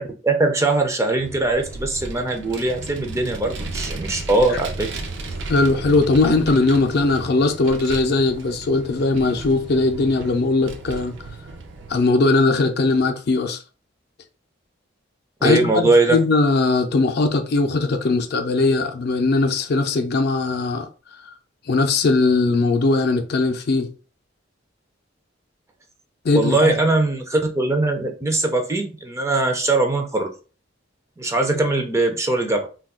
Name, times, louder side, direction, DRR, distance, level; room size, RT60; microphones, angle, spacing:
voice 1, 0.0-5.0 15.4-16.2 26.3-30.3 31.2-32.6, right 2 dB, 15° right, 0.4 m, -21 dB
Vehicle, 1.2-12.1, right 3 dB, 70° right, 0.5 m, -34 dB
voice 2, 5.5-11.1 11.9-13.6 15.4-20.9 21.7-23.9 26.2-26.7, left 3 dB, 55° left, 0.4 m, -19 dB
2.3 x 2.2 x 3.6 m
head